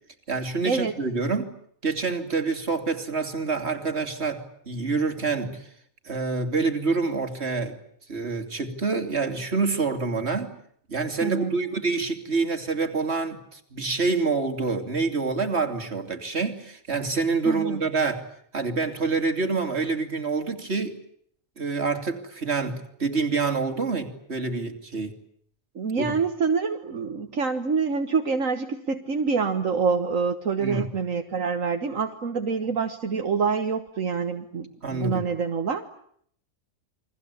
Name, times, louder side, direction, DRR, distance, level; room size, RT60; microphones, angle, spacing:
voice 1, 0.3-1.5 1.8-5.7 6.0-7.8 8.1-10.5 10.9-18.2 18.5-20.9 21.6-25.1 26.0-26.1 30.6-30.9 34.8-35.3, right 4 dB, 50° right, 4 dB, 3.1 m, -27 dB
voice 2, 11.2-11.5 17.5-17.8 25.8-35.9, right 5 dB, 70° right, 5 dB, 1.9 m, -26 dB
29.5 x 23.5 x 8.3 m, 0.66 s
omnidirectional pair, 1.4 m